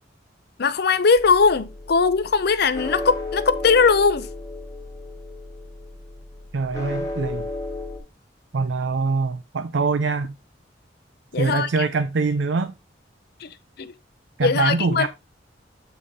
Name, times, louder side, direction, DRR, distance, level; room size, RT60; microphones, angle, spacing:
voice 1, 0.6-4.3 11.3-11.7 13.4-13.5 13.8-13.9 14.4-15.1, left 5 dB, 60° left, 0.6 m, -19 dB
sound 1, 1.2-8.0, left 2 dB, 20° left, 1.4 m, -34 dB
voice 2, 6.5-7.5 8.5-10.3 11.4-12.7 14.4-15.1, right 4 dB, 65° right, 0.5 m, -23 dB
7.9 x 4.0 x 3.6 m
head